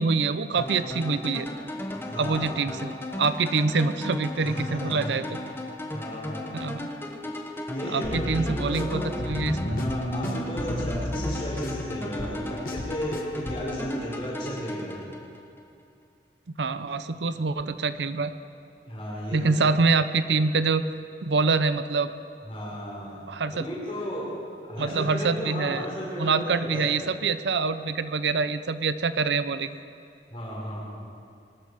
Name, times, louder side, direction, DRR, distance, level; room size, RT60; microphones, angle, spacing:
voice 1, 0.0-1.5 2.2-2.9 3.2-5.3 6.5-6.9 7.8-9.9 16.6-18.3 19.3-20.8 21.2-22.1 23.3-23.6 24.8-25.9 26.2-29.7, right 4 dB, 85° right, 12 dB, 0.6 m, -25 dB
sound 1, 0.6-15.6, left 1 dB, 15° left, 1.0 m, -36 dB
voice 2, 1.9-2.6 4.4-5.1 5.9-6.4 7.7-9.2 9.7-15.0 18.8-19.8 22.4-26.9 30.3-30.9, equal, 30° left, -5 dB, 4.9 m, -34 dB
sound 2, 8.0-13.7, left 1 dB, 50° left, 1.2 m, -33 dB
21.5 x 13.0 x 5.0 m, 2.5 s
head